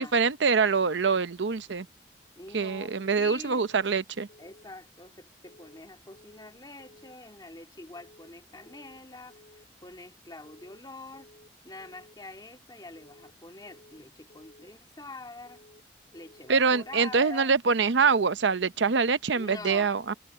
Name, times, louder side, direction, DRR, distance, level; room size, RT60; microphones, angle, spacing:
voice 1, 0.0-1.9 2.5-4.3 16.5-20.1, right 5 dB, 75° right, 0.7 m, -24 dB
voice 2, 2.4-3.7 4.4-11.4 11.6-15.6 16.1-17.5 19.3-19.9, left 2 dB, 20° left, 2.1 m, -45 dB
sound 1, 4.3-4.7 5.4-5.8 6.1-6.5 6.8-7.2 7.9-8.3 8.6-9.0 9.3-9.7 10.4-10.8 11.1-11.5 11.8-12.2 12.9-13.3 13.6-14.0 14.3-14.7 15.5-15.9 16.1-16.5 16.8-17.2, left 1 dB, 50° left, 3.9 m, -56 dB
head